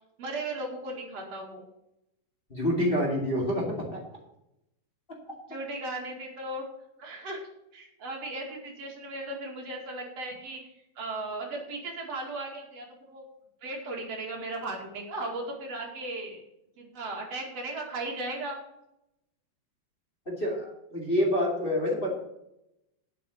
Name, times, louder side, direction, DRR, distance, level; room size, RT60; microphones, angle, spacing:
voice 1, 0.2-1.6 5.5-6.6 7.0-7.4 7.7-10.6 11.0-13.2 13.6-16.4 16.8-18.6, right 2 dB, 45° right, -1 dB, 2.8 m, -36 dB
voice 2, 2.5-4.0 20.2-22.1, equal, 20° left, -2 dB, 1.6 m, -27 dB
8.8 x 8.5 x 7.1 m, 0.85 s
omnidirectional pair, 4.8 m